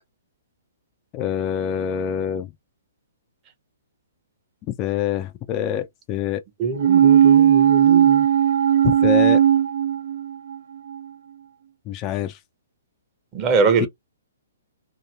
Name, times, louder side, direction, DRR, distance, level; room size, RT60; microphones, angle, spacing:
voice 1, 1.1-2.5 4.7-6.4 8.8-9.4 11.9-12.4 13.8-13.9, left 9 dB, 30° left, 0.4 m, -25 dB
voice 2, 6.6-8.2 13.3-13.9, right 4 dB, 30° right, 0.8 m, -23 dB
sound 1, 6.8-10.6 10.9-11.0, right 9 dB, 60° right, 0.4 m, -16 dB
2.8 x 2.6 x 2.4 m
hypercardioid pair, 130°, 0 cm